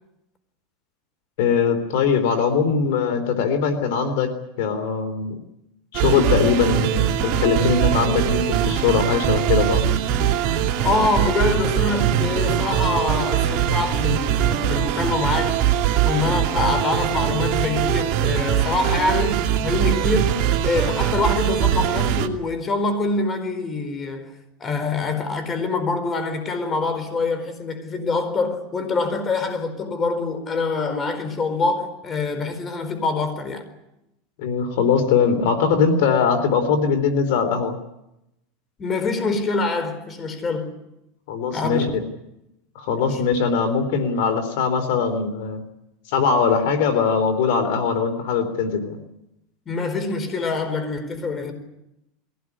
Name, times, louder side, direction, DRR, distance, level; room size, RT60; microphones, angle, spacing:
voice 1, 1.4-4.3 4.6-5.4 5.9-9.8 34.4-37.8 41.3-41.8 42.7-45.6 46.1-49.0, left 6 dB, 70° left, 3.4 m, -21 dB
sound 1, 5.9-22.3, right 10 dB, 45° right, 2.7 m, -22 dB
voice 2, 10.8-15.7 16.0-24.3 24.6-33.7 38.8-40.7 41.5-41.9 42.9-43.1 49.7-51.5, left 3 dB, 25° left, 4.4 m, -25 dB
22.5 x 17.5 x 9.9 m
supercardioid pair, 130°, 0 cm